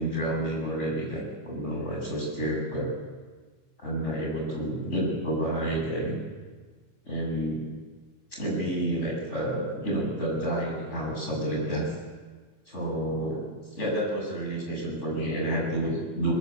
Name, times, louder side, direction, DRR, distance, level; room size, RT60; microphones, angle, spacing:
voice 1, 0.0-2.9 3.8-6.2 7.0-7.6 8.3-11.9 12.7-13.5 13.7-16.3, right 1 dB, 70° left, -2 dB, 8.2 m, -29 dB
21.5 x 21.5 x 8.5 m, 1.4 s
omnidirectional pair, 1.3 m